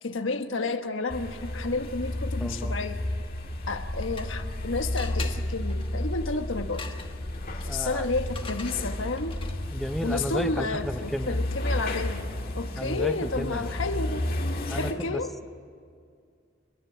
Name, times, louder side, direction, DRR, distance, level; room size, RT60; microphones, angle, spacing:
voice 1, 0.0-3.0 3.7-6.9 7.6-9.4 10.0-12.3 12.5-14.3 14.7-15.3, left 3 dB, 85° left, 7 dB, 1.4 m, -31 dB
sound 1, 1.1-14.9, left 1 dB, 50° left, 2.1 m, -32 dB
voice 2, 2.4-2.8 7.7-8.1 9.7-11.4 12.8-13.6 14.7-15.2, equal, ahead, 10 dB, 0.7 m, -33 dB
sound 2, 3.8-4.6 5.0-9.8, left 5 dB, 25° left, 1.3 m, -44 dB
29.5 x 11.5 x 9.9 m, 2.2 s
head